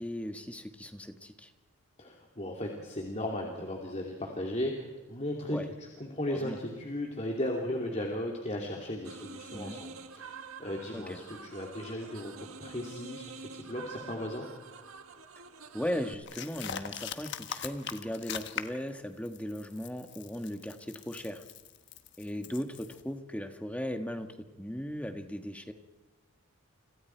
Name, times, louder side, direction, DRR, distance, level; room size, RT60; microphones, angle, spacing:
voice 1, 0.0-1.5 5.5-5.7 6.3-6.6 9.5-9.8 10.9-11.2 15.7-21.4 22.2-25.7, equal, 5° left, 6 dB, 1.5 m, -37 dB
voice 2, 2.0-5.6 6.0-14.4, left 1 dB, 30° left, 0 dB, 2.7 m, -36 dB
sound 1, 9.0-16.1, right 5 dB, 70° right, 1.7 m, -47 dB
sound 2, 16.3-18.9 19.3-23.0, left 8 dB, 50° left, 1.3 m, -41 dB
30.0 x 26.0 x 4.6 m, 1.2 s
head